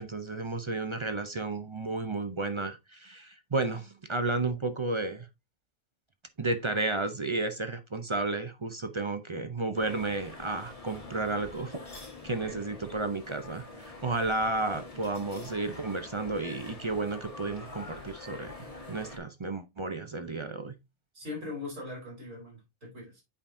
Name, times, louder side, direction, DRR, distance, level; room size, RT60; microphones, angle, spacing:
voice 1, 0.0-5.3 6.4-11.8 12.2-18.5 18.9-20.7, right 3 dB, 35° right, 0.5 m, -32 dB
sound 1, 9.7-19.2, left 3 dB, 25° left, 1.7 m, -45 dB
voice 2, 21.1-23.2, left 3 dB, 70° right, 4.3 m, -40 dB
8.5 x 5.1 x 2.7 m
omnidirectional pair, 1.4 m